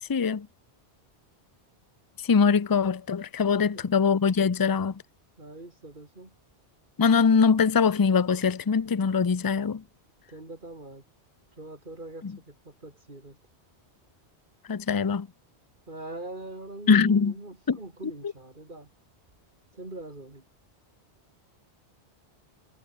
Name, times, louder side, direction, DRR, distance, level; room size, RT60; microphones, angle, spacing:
voice 1, 0.1-0.5 2.2-5.0 7.0-9.8 12.2-12.4 14.7-15.3 16.9-17.3 17.7-17.8, left 5 dB, 25° left, 0.5 m, -22 dB
voice 2, 3.6-3.9 5.4-6.3 10.3-11.0 11.6-13.4 15.9-18.9 19.7-20.4, right 2 dB, 45° right, 4.3 m, -42 dB
omnidirectional pair, 1.1 m